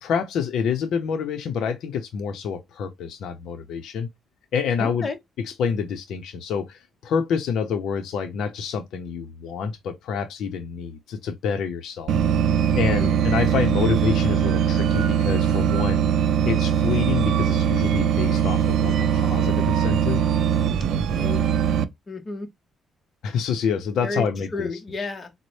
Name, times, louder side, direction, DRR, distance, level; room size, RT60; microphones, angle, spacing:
voice 1, 0.0-4.1 4.5-5.1 5.4-12.1 12.7-16.1 16.4-20.2 23.2-24.7, left 6 dB, 75° left, 0.5 m, -27 dB
voice 2, 4.8-5.2 13.0-13.3 21.1-21.5 22.1-22.5 24.0-24.3 24.5-25.3, left 3 dB, 35° left, 0.8 m, -31 dB
sound 1, 12.1-21.8, right 8 dB, 70° right, 0.4 m, -21 dB
4.0 x 2.0 x 3.1 m
cardioid pair, 90°, 0 cm